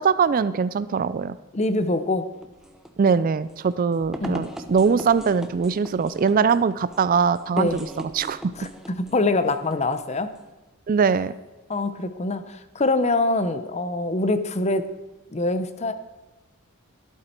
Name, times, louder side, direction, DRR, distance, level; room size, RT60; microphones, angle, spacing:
voice 1, 0.0-1.4 3.0-8.4 10.9-11.4, right 5 dB, 40° right, 15 dB, 0.3 m, -22 dB
voice 2, 1.5-2.3 4.2-4.5 7.6-7.8 8.6-10.3 11.7-14.9 15.3-15.9, left 2 dB, 30° left, 11 dB, 0.7 m, -24 dB
sound 1, 2.3-10.5, equal, ahead, 0.8 m, -41 dB
12.0 x 12.0 x 4.4 m, 1.1 s
head